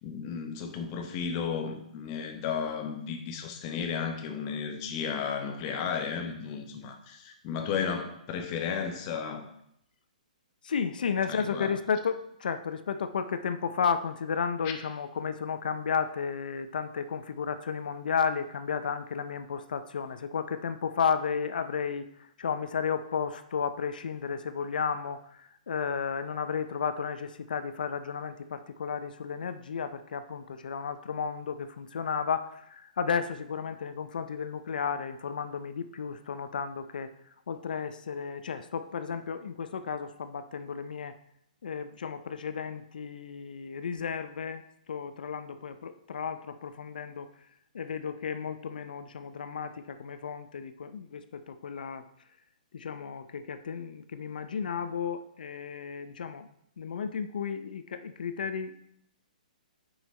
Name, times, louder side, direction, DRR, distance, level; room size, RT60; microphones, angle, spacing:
voice 1, 0.0-9.5 11.3-11.7, left 6 dB, 30° left, 5 dB, 0.9 m, -34 dB
voice 2, 10.6-37.1 37.5-41.1 41.6-47.3 47.7-52.0 52.7-56.5 56.8-58.8, left 6 dB, 75° left, 10 dB, 0.5 m, -33 dB
5.7 x 5.6 x 4.3 m, 0.74 s
hypercardioid pair, 155°, 5 cm